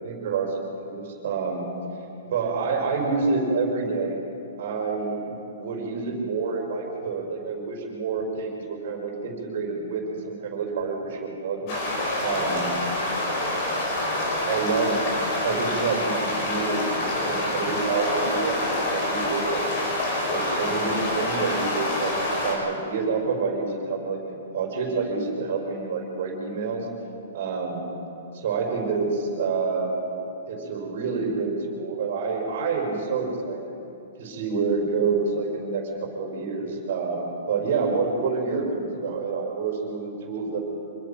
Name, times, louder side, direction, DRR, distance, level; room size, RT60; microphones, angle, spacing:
voice 1, 0.0-1.7 2.2-4.2 4.6-11.8 12.2-12.7 14.4-15.0 15.4-19.6 20.3-26.9 27.3-27.9 28.3-30.1 30.5-33.7 34.2-40.6, right 4 dB, 45° right, 0 dB, 5.7 m, -28 dB
sound 1, 11.7-22.5, left 1 dB, 30° left, 4.9 m, -27 dB
26.0 x 21.5 x 5.9 m, 3.0 s
hypercardioid pair, 180°, 0 cm